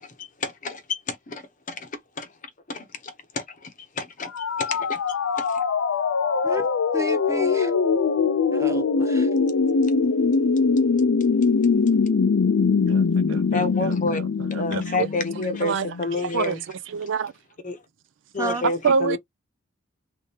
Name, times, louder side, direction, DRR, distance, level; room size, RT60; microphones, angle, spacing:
voice 1, 0.2-1.4 1.7-1.9 2.2-2.3 2.7-3.7 4.0-4.3 4.6-5.0 5.4-5.6 13.5-14.2 14.5-16.6 17.6-17.8 18.3-19.2, left 3 dB, 40° left, 0.8 m, -29 dB
sound 1, 4.3-16.1, left 5 dB, 70° left, 0.5 m, -22 dB
voice 2, 6.9-7.7 8.5-9.3 18.4-18.6, right 1 dB, 15° right, 0.8 m, -31 dB
voice 3, 12.9-15.1 15.6-17.3 18.8-19.2, right 6 dB, 60° right, 0.4 m, -28 dB
3.4 x 3.3 x 2.8 m
head